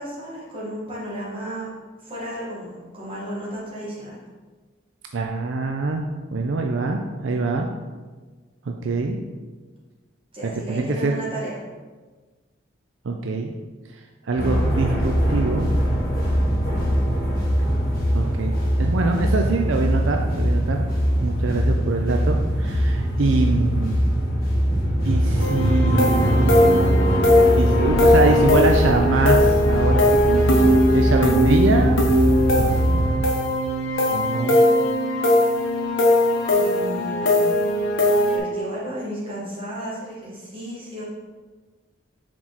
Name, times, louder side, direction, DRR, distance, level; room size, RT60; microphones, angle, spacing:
voice 1, 0.0-1.7 2.0-4.2 10.3-11.6 36.5-37.5 38.3-41.0, right 1 dB, 25° right, -7 dB, 1.9 m, -33 dB
voice 2, 5.1-7.7 8.7-9.2 10.7-11.1 13.0-13.5 13.9-15.7 18.1-20.9 21.2-24.0 25.0-27.0 27.5-32.0 32.5-33.1 34.1-34.6, right 3 dB, 70° right, 3 dB, 0.5 m, -24 dB
sound 1, 14.4-33.2, equal, 50° left, 1.8 m, -21 dB
sound 2, 25.4-38.4, left 1 dB, 75° left, 1.0 m, -19 dB
6.2 x 4.5 x 4.1 m, 1.3 s
head